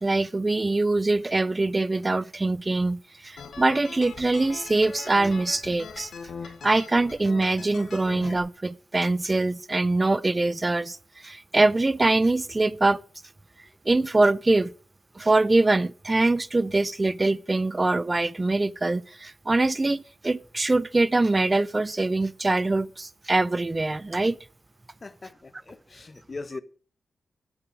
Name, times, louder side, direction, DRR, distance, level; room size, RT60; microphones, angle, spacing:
voice 1, 0.0-6.1 6.6-13.0 13.9-14.7 15.2-24.4, right 2 dB, 30° right, 0.4 m, -23 dB
sound 1, 3.4-8.4, left 5 dB, 80° left, 1.4 m, -41 dB
voice 2, 25.0-26.6, left 3 dB, 45° left, 1.0 m, -40 dB
9.9 x 8.2 x 6.1 m
cardioid pair, 55°, 0 cm